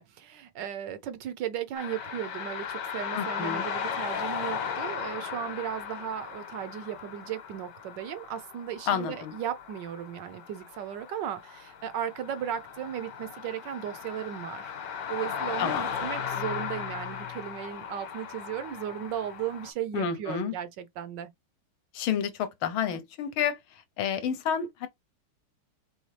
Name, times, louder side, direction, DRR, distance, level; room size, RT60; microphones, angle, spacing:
voice 1, 0.0-14.7 15.1-21.3, right 10 dB, 75° right, 1.0 m, -36 dB
sound 1, 1.7-19.7, left 7 dB, 60° left, 1.5 m, -37 dB
voice 2, 3.1-3.7 8.9-9.3 15.6-15.8 19.9-20.5 21.9-24.9, left 8 dB, 75° left, 1.5 m, -30 dB
4.2 x 3.4 x 3.2 m
omnidirectional pair, 2.4 m